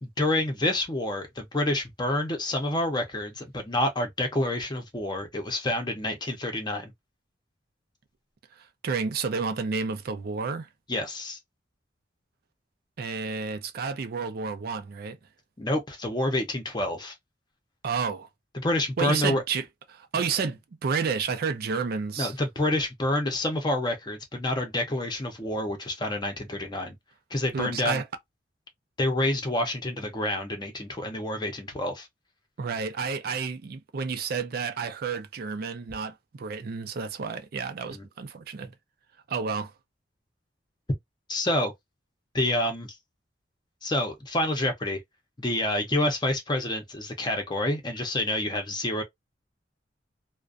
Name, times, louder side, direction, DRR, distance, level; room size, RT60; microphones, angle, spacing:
voice 1, 0.0-6.9 10.9-11.4 15.6-17.1 18.5-19.4 22.2-27.0 27.3-28.0 29.0-32.1 37.9-38.1 41.3-41.7 42.3-43.0 43.8-45.0 45.4-49.0, left 1 dB, 25° left, 0.6 m, -28 dB
voice 2, 8.6-10.7 13.0-15.2 17.8-18.3 19.0-22.3 27.5-28.1 32.6-38.7 39.3-39.7, right 5 dB, 55° right, 0.4 m, -30 dB
2.4 x 2.1 x 2.4 m
head